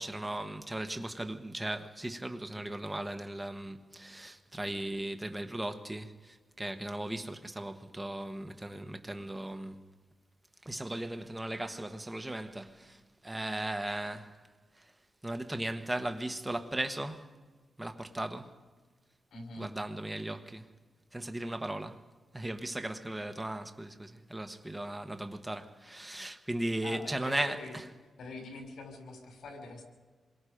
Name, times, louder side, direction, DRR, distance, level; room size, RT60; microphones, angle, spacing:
voice 1, 0.0-9.8 10.6-14.4 14.8-14.9 15.2-17.3 17.8-18.5 19.6-20.7 21.1-22.0 22.3-27.6, right 1 dB, 10° right, 1.2 m, -37 dB
voice 2, 19.3-19.7 26.8-27.7 28.2-29.8, left 3 dB, 80° left, 5.4 m, -44 dB
27.0 x 23.0 x 5.1 m
wide cardioid pair, 130°, 0 cm